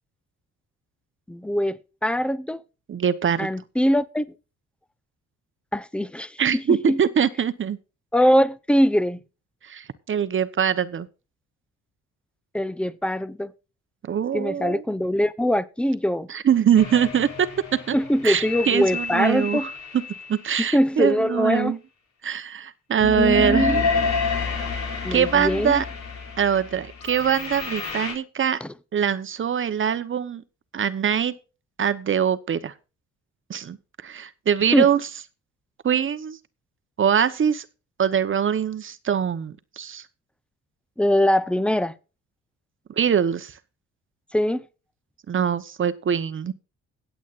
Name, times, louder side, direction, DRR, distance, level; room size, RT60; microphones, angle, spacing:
voice 1, 1.3-2.6 3.4-4.2 5.7-7.0 8.1-9.2 12.5-13.5 14.3-16.3 17.9-19.7 20.7-21.7 23.1-24.0 25.0-25.8 28.6-28.7 34.7-34.9 41.0-41.9 44.3-44.6, equal, 5° left, 0.7 m, -22 dB
voice 2, 2.9-3.5 6.4-7.8 9.6-11.1 14.0-14.8 16.3-17.9 18.2-19.7 20.3-21.8 22.2-23.8 25.1-25.8 26.4-28.6 28.9-30.4 30.7-31.3 31.8-32.7 33.5-33.8 34.0-35.0 35.8-36.4 37.0-37.6 38.0-40.0 43.0-43.5 45.3-46.5, right 8 dB, 40° right, 0.9 m, -23 dB
sound 1, 16.8-20.4 23.0-28.1, left 4 dB, 70° left, 3.8 m, -29 dB
22.0 x 8.2 x 2.5 m
cardioid pair, 90°, 30 cm